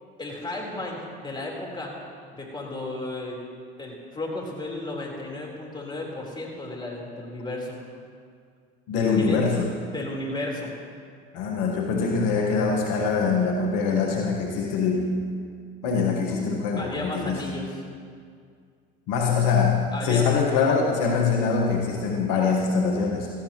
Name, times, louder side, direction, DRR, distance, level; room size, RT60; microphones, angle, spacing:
voice 1, 0.2-2.0 2.3-3.4 3.8-7.8 9.2-9.4 9.9-10.7 15.9-16.4 16.8-17.7 19.9-20.4, left 2 dB, 15° left, -2 dB, 3.8 m, -34 dB
voice 2, 8.9-9.7 11.3-15.2 15.8-17.6 19.1-23.3, left 5 dB, 65° left, 0 dB, 1.4 m, -23 dB
17.0 x 14.5 x 3.0 m, 2.1 s
hypercardioid pair, 70°, 32 cm